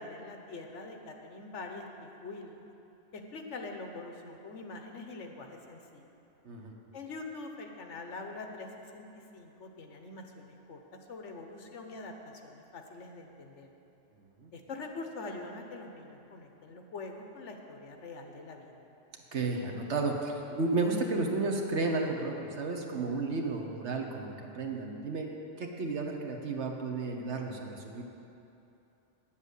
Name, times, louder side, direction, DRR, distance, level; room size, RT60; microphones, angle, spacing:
voice 1, 0.0-2.6 3.1-6.0 6.9-8.7 8.9-9.0 9.3-10.8 11.1-13.7 14.5-18.8, left 3 dB, 70° left, 3 dB, 1.3 m, -44 dB
voice 2, 19.3-25.3 25.6-28.0, right 3 dB, 65° right, 2 dB, 1.4 m, -32 dB
10.0 x 7.4 x 8.2 m, 2.9 s
omnidirectional pair, 1.3 m